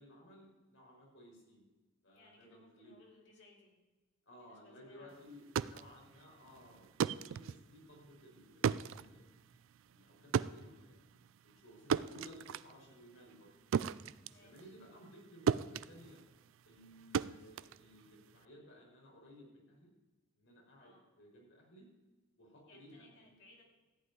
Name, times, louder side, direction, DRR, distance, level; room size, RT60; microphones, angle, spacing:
voice 1, 0.0-1.6 2.0-2.9 4.2-9.3 9.8-11.0 11.4-13.5 14.3-16.2 16.6-19.9 20.4-21.9 22.4-23.4, equal, 85° left, -2 dB, 5.1 m, -57 dB
voice 2, 2.1-3.7 4.4-5.2 14.2-14.7 20.8-21.1 22.7-23.6, left 2 dB, 60° left, -1 dB, 2.9 m, -63 dB
sound 1, 5.3-15.2 15.5-18.4, right 7 dB, 80° right, 0.3 m, -37 dB
14.5 x 5.5 x 9.2 m, 1.2 s
head